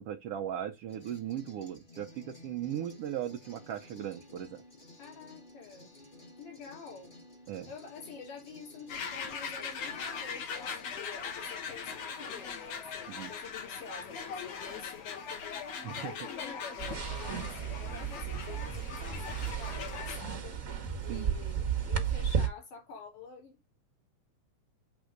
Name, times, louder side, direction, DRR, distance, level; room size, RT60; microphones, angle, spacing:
voice 1, 0.0-4.6 7.5-7.7 13.1-13.3 15.8-16.1 21.1-21.3, right 10 dB, 75° right, 1.4 m, -38 dB
sound 1, 0.9-11.1, left 2 dB, 35° left, 0.8 m, -54 dB
voice 2, 5.0-5.9 6.4-7.1 7.7-20.6 21.0-23.6, left 5 dB, 80° left, 5.0 m, -48 dB
sound 2, 8.9-20.2, left 6 dB, 60° left, 2.3 m, -40 dB
sound 3, 16.8-22.5, right 7 dB, 45° right, 1.0 m, -34 dB
8.0 x 3.5 x 6.5 m
omnidirectional pair, 3.6 m